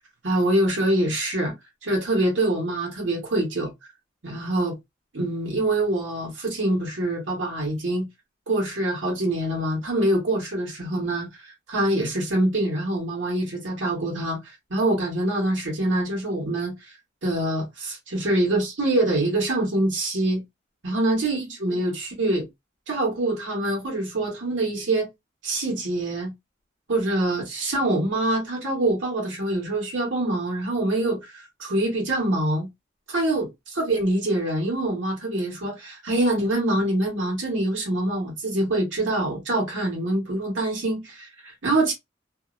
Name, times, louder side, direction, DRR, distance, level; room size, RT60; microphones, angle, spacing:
voice 1, 0.2-1.5 1.8-3.7 4.2-4.8 5.1-8.1 8.5-17.0 17.2-20.4 20.8-22.5 22.9-25.1 25.4-26.3 26.9-32.7 33.1-33.5 33.8-41.9, right 1 dB, 80° right, 1.2 m, -25 dB
2.7 x 2.0 x 2.4 m
head